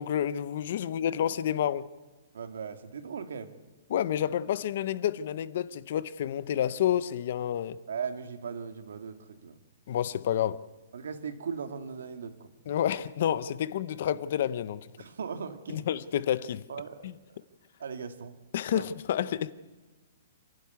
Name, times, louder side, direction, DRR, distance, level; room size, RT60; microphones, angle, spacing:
voice 1, 0.0-1.9 3.9-7.8 9.9-10.6 12.7-14.9 15.7-16.7 17.0-17.1 18.5-19.5, left 10 dB, 40° left, 0.6 m, -29 dB
voice 2, 2.3-3.5 7.9-9.6 10.9-12.5 15.0-15.8 16.7-17.1 17.8-18.3 18.7-18.9, right 6 dB, 80° right, 2.0 m, -38 dB
27.0 x 12.0 x 9.5 m
hypercardioid pair, 180°, 0 cm